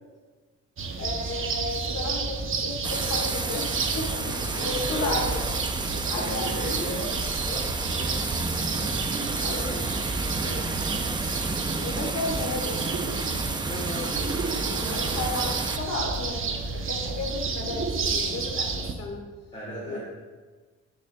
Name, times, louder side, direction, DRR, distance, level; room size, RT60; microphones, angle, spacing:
sound 1, 0.8-18.9, right 4 dB, 45° right, 0.8 m, -31 dB
voice 1, 1.0-4.1 4.6-5.4 6.1-7.0 9.4-9.7 10.1-10.2 11.7-12.9 14.9-19.2 19.9-20.0, left 2 dB, 55° left, 0 dB, 1.7 m, -33 dB
sound 2, 2.8-15.8, right 3 dB, 15° right, 0.4 m, -31 dB
voice 2, 4.2-5.2 5.8-7.2 7.4-8.3 8.7-9.9 10.3-10.7 13.7-14.4 14.8-15.0 19.5-20.0, equal, 20° left, -8 dB, 2.2 m, -37 dB
10.5 x 5.4 x 2.2 m, 1.4 s
cardioid pair, 90°, 30 cm